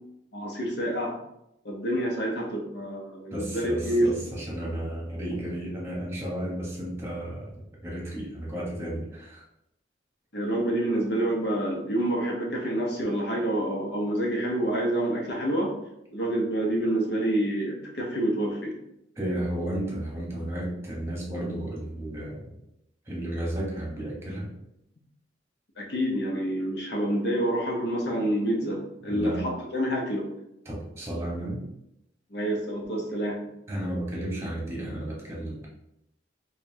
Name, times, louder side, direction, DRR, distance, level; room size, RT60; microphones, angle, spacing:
voice 1, 0.3-1.1 1.6-4.3 10.3-15.7 16.1-18.7 25.8-29.3 29.7-30.3 32.3-33.4, right 1 dB, 65° left, 0 dB, 0.9 m, -27 dB
voice 2, 3.3-9.4 19.2-22.5 23.1-24.5 29.1-29.4 30.6-31.6 33.7-35.7, right 1 dB, 15° right, -4 dB, 1.1 m, -33 dB
5.1 x 2.5 x 2.8 m, 0.82 s
head